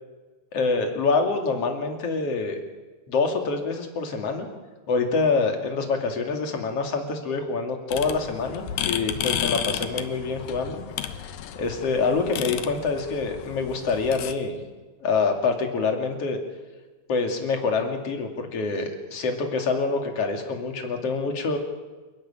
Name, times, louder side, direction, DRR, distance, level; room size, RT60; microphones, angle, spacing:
voice 1, 0.5-2.6 3.1-4.5 4.9-10.8 11.6-14.6 15.0-16.4 17.1-21.6, left 4 dB, 45° left, 4 dB, 3.2 m, -26 dB
sound 1, 7.9-14.3, left 10 dB, 80° left, 2.8 m, -32 dB
29.0 x 12.0 x 8.9 m, 1.3 s
omnidirectional pair, 4.1 m